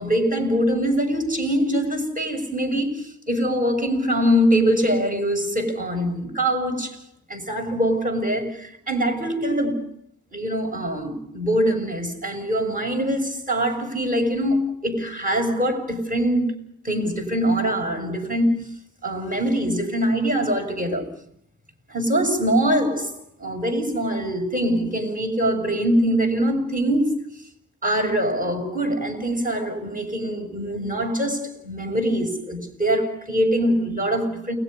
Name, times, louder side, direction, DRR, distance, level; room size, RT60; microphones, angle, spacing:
voice 1, 0.0-7.0 7.3-9.9 10.3-16.5 16.8-18.7 19.0-21.1 21.9-23.1 23.4-27.2 27.8-34.6, equal, 25° right, 6.7 m, -23 dB
29.5 x 21.5 x 5.4 m
wide cardioid pair, 105°, 31 cm